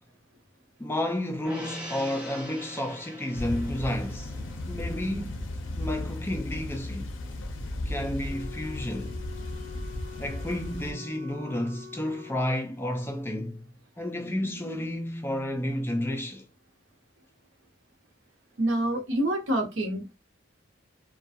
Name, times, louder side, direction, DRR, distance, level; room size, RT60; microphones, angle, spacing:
voice 1, 0.8-4.3 4.7-5.5 5.8-7.1 7.9-9.2 10.2-16.5, left 1 dB, 10° left, 0.3 m, -31 dB
Gong, 1.4-8.1 8.4-8.5, equal, 5° right, 0.7 m, -45 dB
sound 1, 3.3-10.9, left 1 dB, 75° left, 0.5 m, -35 dB
Wind instrument woodwind instrument, 8.3-12.6, left 8 dB, 25° right, 1.4 m, -46 dB
voice 2, 18.6-20.1, right 1 dB, 75° right, 0.8 m, -27 dB
2.4 x 2.2 x 2.6 m
head